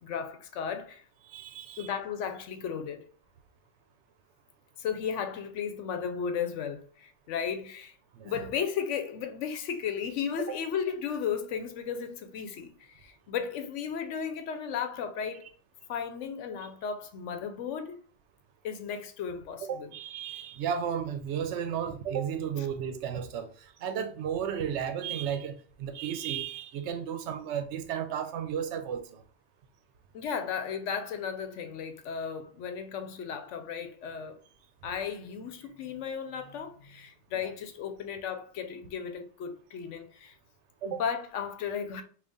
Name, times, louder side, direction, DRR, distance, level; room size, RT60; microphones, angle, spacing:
voice 1, 0.0-1.0 1.8-3.0 4.8-7.9 8.2-15.5 15.9-17.9 18.6-19.9 30.1-34.4 34.8-40.4 40.8-42.0, left 7 dB, 90° left, 0.9 m, -35 dB
voice 2, 1.2-1.9 8.1-8.4 19.6-29.2 37.3-37.4 40.8-41.0, right 8 dB, 75° right, 0.9 m, -34 dB
3.9 x 2.4 x 3.5 m
omnidirectional pair, 1.2 m